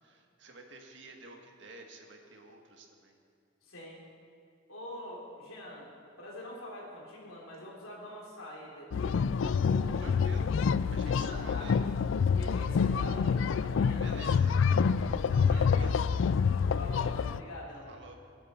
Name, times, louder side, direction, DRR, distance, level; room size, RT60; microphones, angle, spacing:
voice 1, 0.0-3.2 10.0-10.5 10.9-11.7 14.0-14.5 15.5-16.0 17.9-18.1, right 3 dB, 60° right, 2 dB, 1.7 m, -51 dB
voice 2, 3.6-4.0 4.7-5.9 6.2-9.2 9.5-10.0 11.2-12.0 12.3-13.3 13.6-14.3 14.6-14.9 15.3-15.8 16.7-17.9, left 1 dB, 90° left, -3 dB, 3.6 m, -44 dB
sound 1, 8.9-17.4, left 6 dB, 70° left, 0.3 m, -27 dB
23.5 x 10.0 x 4.4 m, 2.3 s
head